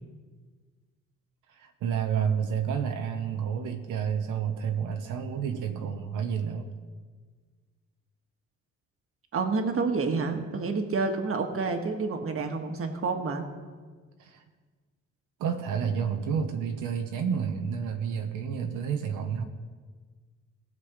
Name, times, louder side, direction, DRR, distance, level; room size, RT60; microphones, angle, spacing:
voice 1, 1.5-6.7 14.2-14.4 15.4-19.4, right 7 dB, 85° right, 5 dB, 1.0 m, -30 dB
voice 2, 9.3-13.5, right 4 dB, 45° right, 5 dB, 1.5 m, -29 dB
17.5 x 6.9 x 5.0 m, 1.5 s
cardioid pair, 90°, 30 cm